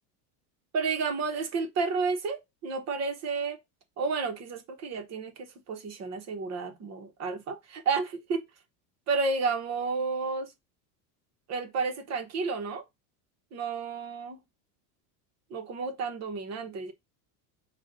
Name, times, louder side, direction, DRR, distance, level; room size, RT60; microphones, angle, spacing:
voice 1, 0.7-3.6 4.0-8.4 9.1-10.5 11.5-12.8 13.5-14.4 15.5-16.9, right 4 dB, 35° right, 1.2 m, -31 dB
5.2 x 2.6 x 3.9 m
supercardioid pair, 135°, 45 cm